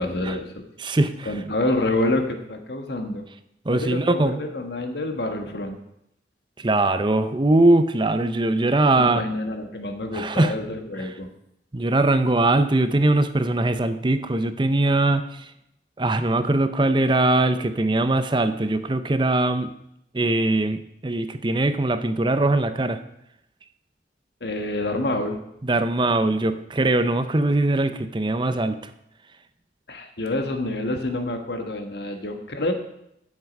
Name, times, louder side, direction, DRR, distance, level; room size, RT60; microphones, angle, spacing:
voice 1, 0.0-0.6 1.2-3.2 3.7-5.8 8.8-11.3 24.4-25.4 29.9-32.7, left 2 dB, 70° left, 5 dB, 1.5 m, -27 dB
voice 2, 0.8-1.3 3.7-4.4 6.6-9.2 10.1-10.6 11.7-15.4 16.0-19.7 20.1-23.0 25.6-28.8, right 2 dB, 25° right, 10 dB, 0.6 m, -21 dB
11.5 x 7.4 x 5.3 m, 0.80 s
head